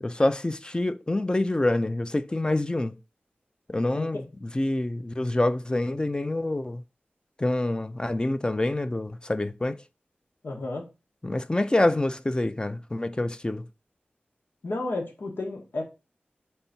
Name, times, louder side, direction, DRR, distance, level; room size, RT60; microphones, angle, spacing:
voice 1, 0.0-3.0 3.7-6.8 7.4-9.8 11.2-13.7, left 1 dB, 25° left, 0.5 m, -26 dB
voice 2, 10.4-10.9 14.6-15.8, left 2 dB, 85° left, 1.8 m, -32 dB
4.5 x 4.1 x 5.7 m
wide cardioid pair, 90°, 4 cm